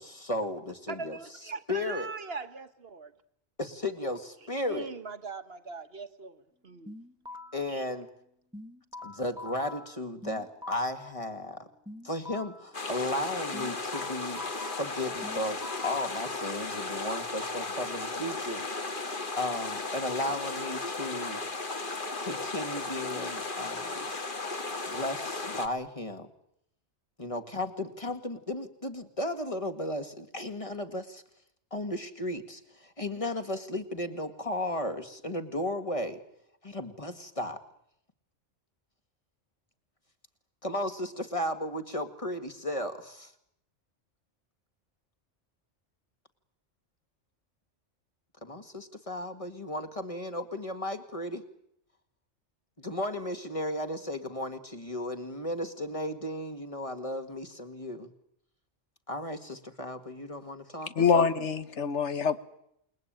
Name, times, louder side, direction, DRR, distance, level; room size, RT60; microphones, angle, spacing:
voice 1, 0.0-1.2 1.7-2.1 3.6-4.9 7.5-8.1 9.0-11.7 12.0-18.6 19.4-21.4 22.2-23.9 24.9-26.3 27.2-31.2 31.7-36.2 36.6-37.6 40.6-43.3 48.4-51.4 52.8-58.1 59.1-61.2, left 1 dB, 30° left, 2.1 m, -35 dB
voice 2, 0.9-3.1 4.6-7.0 7.7-7.8, right 4 dB, 55° right, 1.6 m, -40 dB
sound 1, 6.9-7.7 8.5-11.1 11.9-12.7 13.5-16.1, left 2 dB, 5° right, 1.5 m, -45 dB
sound 2, 12.7-25.7, left 3 dB, 45° left, 1.9 m, -35 dB
voice 3, 60.9-62.4, left 6 dB, 75° left, 1.6 m, -25 dB
28.5 x 21.0 x 9.1 m
omnidirectional pair, 1.2 m